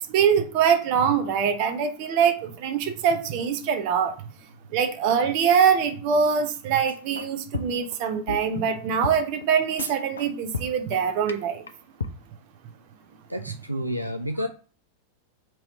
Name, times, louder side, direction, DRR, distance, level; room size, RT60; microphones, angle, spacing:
voice 1, 0.1-4.1 4.7-11.6, right 7 dB, 45° right, 7 dB, 0.7 m, -23 dB
sound 1, 6.9-7.3 7.5-7.9 8.3-8.4 8.7-8.8 9.0-9.2 9.4-9.5 9.8-10.3 10.5-10.9 11.3-11.4 11.7-11.8 12.0-12.1, left 5 dB, 70° left, 0.4 m, -31 dB
voice 2, 13.3-14.5, equal, 85° right, 5 dB, 0.3 m, -29 dB
3.1 x 3.0 x 4.0 m, 0.38 s
figure-of-eight pair, 90°, 0 cm